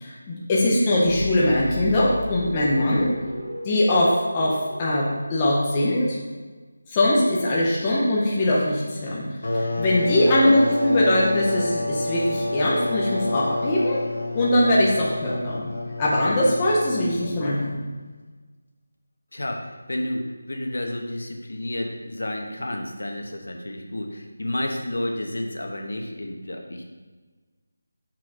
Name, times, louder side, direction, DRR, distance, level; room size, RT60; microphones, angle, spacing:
voice 1, 0.0-3.1 3.6-6.2 6.9-9.3 9.5-14.0 14.3-15.7 16.0-17.8, left 1 dB, 10° left, -6 dB, 0.6 m, -21 dB
sound 1, 1.1-5.8, left 1 dB, 45° right, 1.8 m, -34 dB
sound 2, 9.4-17.8, left 2 dB, 55° left, 1.0 m, -29 dB
voice 2, 19.3-26.8, left 1 dB, 70° left, 3 dB, 1.1 m, -31 dB
6.0 x 4.5 x 4.8 m, 1.3 s
figure-of-eight pair, 180°, 0 cm